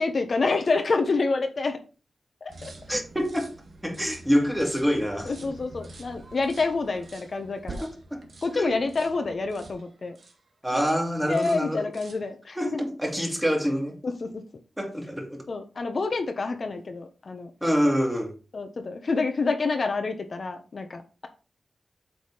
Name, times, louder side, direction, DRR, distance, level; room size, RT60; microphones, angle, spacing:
voice 1, 0.0-1.8 2.4-2.7 5.2-7.9 8.4-10.2 11.3-12.6 14.0-14.4 15.5-17.5 18.5-21.3, left 3 dB, 55° left, 1.1 m, -28 dB
sound 1, 2.5-10.4 10.7-11.1 11.3-12.3, right 2 dB, 65° right, 1.8 m, -46 dB
voice 2, 2.9-3.5 3.8-5.3 7.8-8.2 8.5-8.8 10.6-11.9 12.6-14.0 14.8-15.4 17.6-18.3, equal, 5° right, 2.2 m, -26 dB
7.9 x 3.9 x 5.1 m
cardioid pair, 70°, 0 cm